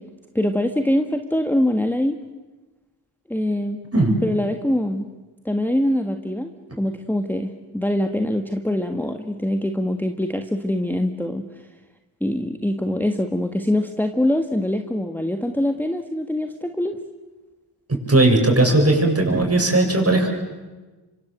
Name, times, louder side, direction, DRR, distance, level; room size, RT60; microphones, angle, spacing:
voice 1, 0.3-2.2 3.3-3.8 4.2-5.1 5.4-11.4 12.2-17.0, left 1 dB, 5° left, 6 dB, 1.7 m, -23 dB
voice 2, 17.9-20.3, right 2 dB, 30° right, 3 dB, 7.9 m, -17 dB
26.0 x 24.5 x 7.8 m, 1.2 s
supercardioid pair, 50°, 48 cm